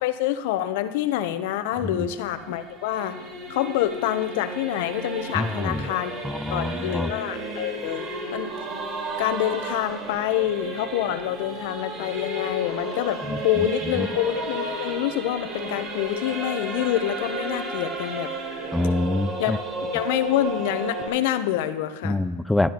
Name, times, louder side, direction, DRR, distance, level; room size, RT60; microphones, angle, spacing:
voice 1, 0.0-3.2 3.5-6.1 6.5-8.1 8.3-8.5 9.2-18.3 19.4-19.5 19.9-22.2, left 12 dB, 65° left, 11 dB, 0.7 m, -26 dB
Singing / Musical instrument, 1.7-21.1, right 1 dB, 30° right, 4.1 m, -33 dB
voice 2, 5.3-5.9 6.2-7.1 13.2-14.1 18.7-19.6 22.0-22.7, left 2 dB, 5° left, 13 dB, 0.3 m, -26 dB
12.0 x 12.0 x 2.9 m, 1.2 s
supercardioid pair, 125°, 0 cm